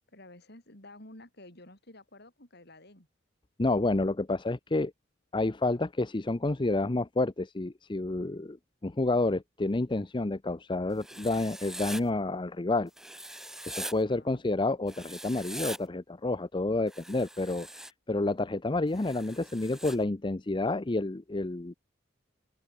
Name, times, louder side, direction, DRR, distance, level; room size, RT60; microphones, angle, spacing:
voice 1, 0.1-3.1 13.9-14.4, left 1 dB, 60° left, 6.8 m, -52 dB
voice 2, 3.6-4.9 5.3-8.6 8.8-12.9 13.7-17.7 18.1-21.7, left 2 dB, 25° left, 0.6 m, -29 dB
Writing, 11.0-12.0 13.0-13.9 14.9-15.8 16.9-17.9 18.9-20.0, right 1 dB, ahead, 2.1 m, -42 dB
open air
head